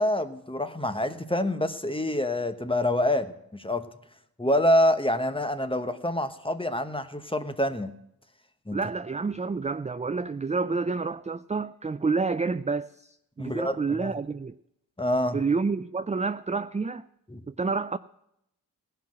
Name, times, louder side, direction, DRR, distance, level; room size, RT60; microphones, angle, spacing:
voice 1, 0.0-3.9 4.4-7.9 8.7-8.8 13.4-14.1 15.0-15.4 17.3-17.4, left 1 dB, 15° left, 10 dB, 1.0 m, -26 dB
voice 2, 8.7-14.6 15.3-17.0 17.5-18.0, right 4 dB, 20° right, 12 dB, 0.3 m, -29 dB
16.5 x 5.7 x 7.5 m, 0.79 s
wide cardioid pair, 45°, 39 cm